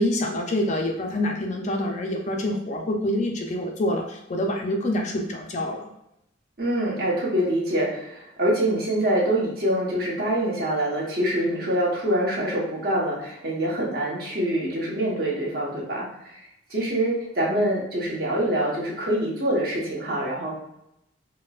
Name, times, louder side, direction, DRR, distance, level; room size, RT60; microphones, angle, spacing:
voice 1, 0.0-5.9, left 1 dB, 35° left, 2 dB, 0.4 m, -26 dB
voice 2, 6.6-16.4 16.7-20.5, right 1 dB, 50° right, -4 dB, 1.0 m, -25 dB
4.3 x 2.1 x 2.3 m, 0.81 s
head